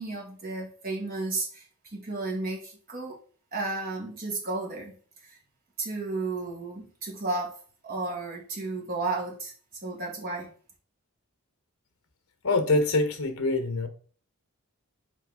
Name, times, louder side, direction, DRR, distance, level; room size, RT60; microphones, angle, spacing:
voice 1, 0.0-1.6 1.9-3.2 3.5-5.0 5.8-7.6 7.8-9.5 9.8-10.5, right 3 dB, 40° right, -2 dB, 1.8 m, -33 dB
voice 2, 12.4-13.9, left 2 dB, 70° left, 7 dB, 1.0 m, -24 dB
6.5 x 4.4 x 3.6 m, 0.43 s
head